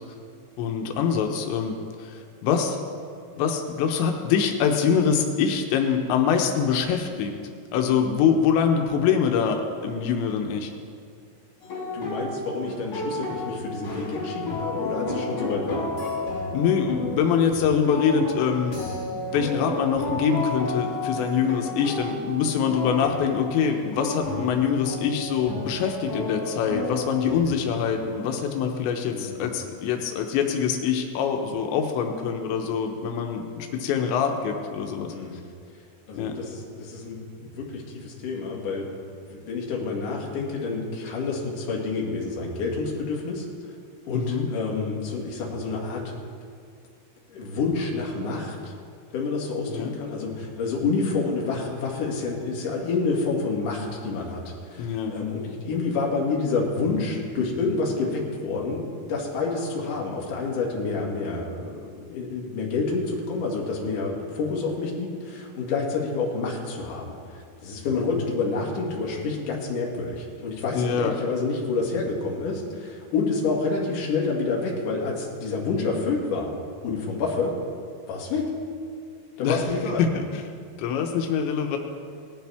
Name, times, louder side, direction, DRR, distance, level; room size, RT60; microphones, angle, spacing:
voice 1, 0.6-2.8 3.4-7.3 7.7-10.7 16.5-18.8 19.1-35.1 36.2-36.4 44.1-44.5 49.7-49.9 54.8-55.1 70.7-71.2 79.4-79.6 80.1-80.4 80.8-81.8, left 7 dB, 85° left, 3 dB, 3.2 m, -24 dB
sound 1, 11.6-27.5, left 1 dB, 35° left, 5.1 m, -32 dB
voice 2, 11.9-15.9 29.1-29.5 35.1-35.4 36.1-38.9 39.1-43.4 44.1-46.0 47.3-48.7 49.1-76.5 76.8-77.5 78.1-78.5 79.4-80.0, left 4 dB, 55° left, -3 dB, 3.1 m, -28 dB
19.0 x 12.0 x 3.5 m, 2.2 s
omnidirectional pair, 5.0 m